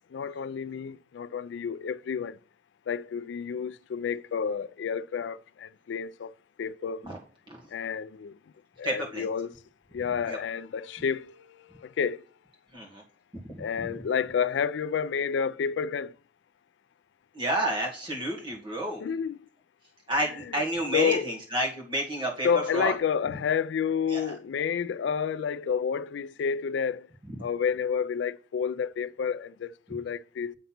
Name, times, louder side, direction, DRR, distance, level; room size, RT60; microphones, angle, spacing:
voice 1, 0.1-2.3 2.9-6.3 6.6-7.0 7.7-8.3 8.8-9.5 9.9-12.2 13.6-16.1 19.0-19.4 20.9-21.3 22.4-27.1 27.4-30.5, left 7 dB, 75° left, 0.3 m, -30 dB
voice 2, 8.8-9.3 10.3-10.4 12.7-13.0 13.3-13.9 17.3-19.0 20.1-22.9 24.1-24.3, right 1 dB, 25° right, 2.0 m, -30 dB
8.1 x 4.0 x 5.8 m
head